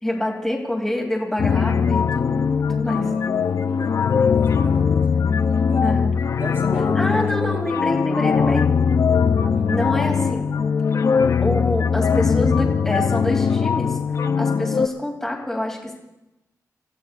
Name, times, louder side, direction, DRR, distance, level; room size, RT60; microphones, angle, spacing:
voice 1, 0.0-3.1 5.8-6.1 6.9-8.7 9.7-10.5 11.4-14.0 14.3-15.9, left 1 dB, 5° left, -1 dB, 3.0 m, -26 dB
sound 1, 1.4-14.9, left 6 dB, 50° left, 0.5 m, -20 dB
voice 2, 3.0-5.3 5.7-5.8 6.3-7.7 9.4-9.7, right 2 dB, 40° right, -2 dB, 4.9 m, -36 dB
29.5 x 16.0 x 2.5 m, 0.94 s
wide cardioid pair, 170°, 7 cm